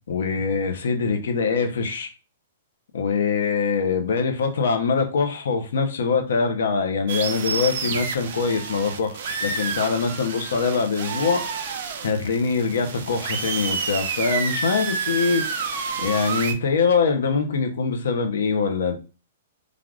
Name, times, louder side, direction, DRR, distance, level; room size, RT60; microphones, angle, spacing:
voice 1, 0.1-2.1 2.9-11.4 12.0-15.5 16.0-19.0, left 5 dB, 75° left, 6 dB, 0.7 m, -23 dB
sound 1, 7.1-16.5, right 5 dB, 50° right, 0.5 m, -29 dB
3.4 x 2.4 x 2.4 m, 0.32 s
hypercardioid pair, 165°, 0 cm